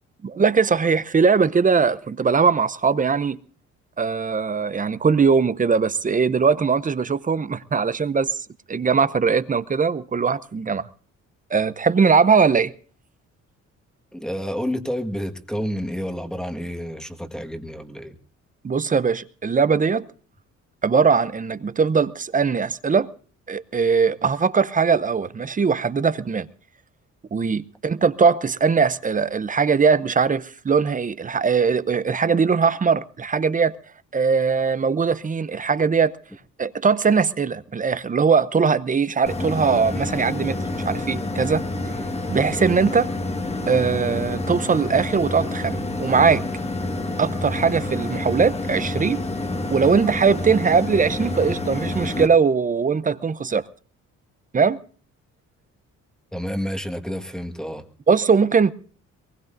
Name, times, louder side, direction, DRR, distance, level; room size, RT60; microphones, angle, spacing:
voice 1, 0.2-3.4 4.0-8.4 8.7-10.8 11.5-12.7 18.6-20.0 20.8-23.1 23.5-26.5 27.3-33.8 34.1-36.1 36.6-40.6 40.8-41.6 42.3-43.1 43.7-46.4 47.2-49.2 49.7-53.6 54.5-54.8 58.1-58.7, right 5 dB, 25° right, 0.7 m, -20 dB
voice 2, 14.1-18.2 56.3-57.8, equal, ahead, 1.6 m, -29 dB
sound 1, 39.3-52.3, left 2 dB, 20° left, 1.6 m, -28 dB
22.5 x 20.0 x 2.6 m
cardioid pair, 90°, 30 cm